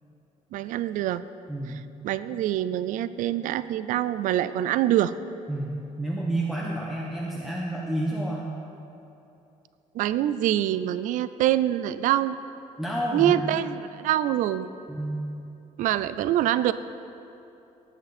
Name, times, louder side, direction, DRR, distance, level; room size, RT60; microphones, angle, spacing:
voice 1, 0.5-1.2 2.0-5.1 9.9-12.4 13.1-14.7 15.8-16.7, right 12 dB, 80° right, 15 dB, 0.4 m, -25 dB
voice 2, 5.5-8.5 12.8-13.6 14.9-15.3, right 1 dB, ahead, -4 dB, 1.0 m, -30 dB
18.0 x 8.8 x 4.2 m, 2.9 s
cardioid pair, 150°, 13 cm